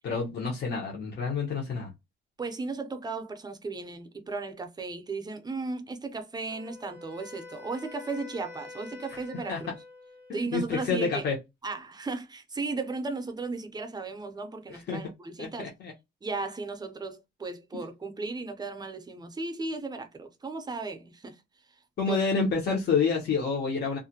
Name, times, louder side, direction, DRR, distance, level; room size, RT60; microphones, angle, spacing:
voice 1, 0.0-1.9 9.5-9.6 10.3-11.4 14.9-15.0 15.4-15.9 22.0-24.0, left 5 dB, 55° left, 0.8 m, -28 dB
voice 2, 2.4-9.8 10.3-11.3 11.6-15.7 16.2-22.2, right 3 dB, 20° right, 0.5 m, -36 dB
Wind instrument woodwind instrument, 6.5-10.5, left 3 dB, 80° left, 1.0 m, -47 dB
2.4 x 2.1 x 2.7 m
cardioid pair, 90°, 20 cm